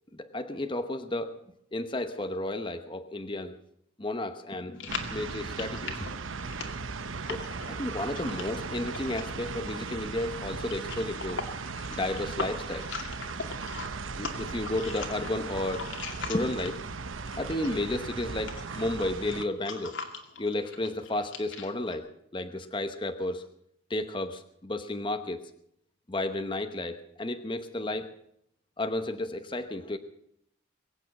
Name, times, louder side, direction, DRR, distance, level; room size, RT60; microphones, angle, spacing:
voice 1, 0.1-1.4 1.7-3.6 4.0-6.1 7.3-11.5 11.9-12.9 14.1-15.9 16.3-16.8 17.4-20.0 20.4-23.5 23.9-25.4 26.1-28.1 28.8-30.0, left 1 dB, 25° left, 8 dB, 0.9 m, -32 dB
sound 1, 4.8-17.0 17.3-22.0, left 4 dB, 80° left, 2.3 m, -41 dB
sound 2, 4.9-19.4, right 4 dB, 90° right, 0.9 m, -37 dB
22.0 x 8.8 x 7.3 m, 0.71 s
head